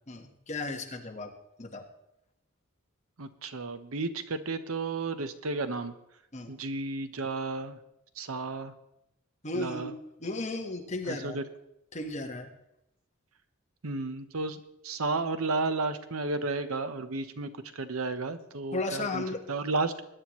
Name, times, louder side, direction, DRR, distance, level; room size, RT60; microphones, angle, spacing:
voice 1, 0.1-1.3 1.6-1.8 6.3-6.6 9.4-9.9 10.2-11.4 11.9-12.5 18.7-19.4, left 2 dB, 35° left, 3 dB, 1.3 m, -35 dB
voice 2, 3.2-5.9 6.5-7.8 8.2-8.7 9.5-9.9 11.1-11.4 13.8-19.2 19.5-19.9, right 3 dB, 90° right, 11 dB, 0.9 m, -33 dB
20.5 x 10.0 x 3.1 m, 0.83 s
head